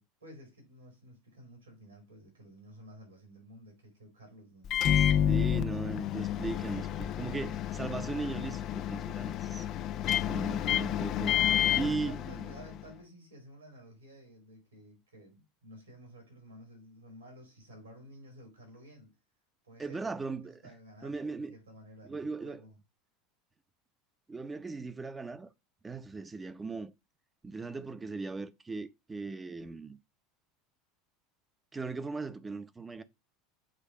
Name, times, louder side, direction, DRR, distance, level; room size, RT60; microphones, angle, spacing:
voice 1, 0.0-5.7 11.8-19.2 19.6-20.1 20.4-22.8, equal, 85° right, 4.2 m, -53 dB
Microwave oven, 4.6-12.8, left 10 dB, 45° left, 0.5 m, -30 dB
voice 2, 5.2-9.7 10.2-12.3 19.8-20.6 21.0-21.6 22.0-22.6 24.3-25.5 25.8-26.9 27.4-30.0 31.7-33.0, right 4 dB, 15° right, 0.8 m, -38 dB
7.6 x 3.3 x 5.1 m
figure-of-eight pair, 75°, 0 cm